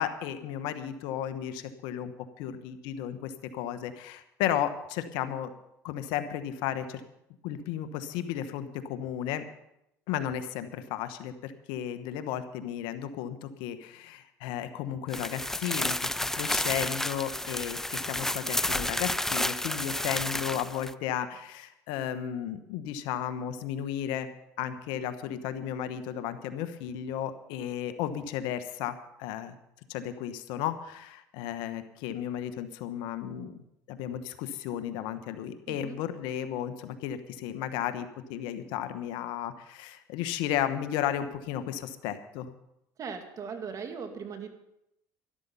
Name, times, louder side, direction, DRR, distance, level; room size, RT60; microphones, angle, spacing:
voice 1, 0.0-2.1 2.4-5.5 5.8-7.0 7.4-9.4 10.1-24.3 24.6-28.9 29.2-29.5 29.9-33.6 33.9-42.5, left 10 dB, 75° left, 10 dB, 1.2 m, -34 dB
sound 1, 15.1-20.9, left 1 dB, 5° left, 0.5 m, -31 dB
voice 2, 35.7-36.0 43.0-44.5, right 6 dB, 45° right, 6 dB, 2.3 m, -38 dB
12.5 x 12.5 x 5.5 m, 0.83 s
supercardioid pair, 90°, 8 cm